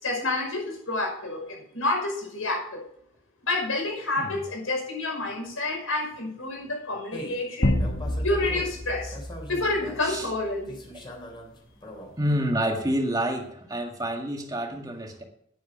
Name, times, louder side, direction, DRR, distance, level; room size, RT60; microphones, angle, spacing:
voice 1, 0.0-2.8 3.5-7.8 8.2-9.2 9.5-10.7, left 2 dB, 90° left, 0 dB, 5.6 m, -29 dB
sound 1, 7.1-7.5 7.8-8.8 9.1-10.0 10.7-12.1, equal, 25° left, 3.5 m, -40 dB
sound 2, 7.6-10.4, left 1 dB, 65° left, 1.6 m, -29 dB
voice 2, 12.2-15.2, right 1 dB, 20° right, 2 dB, 2.0 m, -28 dB
10.5 x 10.0 x 5.0 m, 0.67 s
head